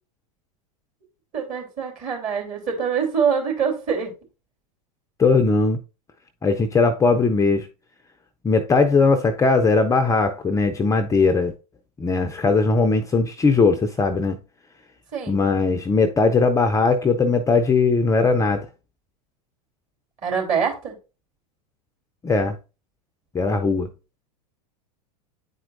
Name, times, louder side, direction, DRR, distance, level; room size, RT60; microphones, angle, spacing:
voice 1, 1.3-4.1 15.1-15.4 20.2-21.0, right 6 dB, 40° right, 3.0 m, -24 dB
voice 2, 5.2-5.8 6.4-7.7 8.4-11.5 12.0-14.4 15.3-18.7 22.2-22.6 23.3-23.9, left 4 dB, 15° left, 0.5 m, -19 dB
9.5 x 4.3 x 2.5 m
hypercardioid pair, 105°, 20 cm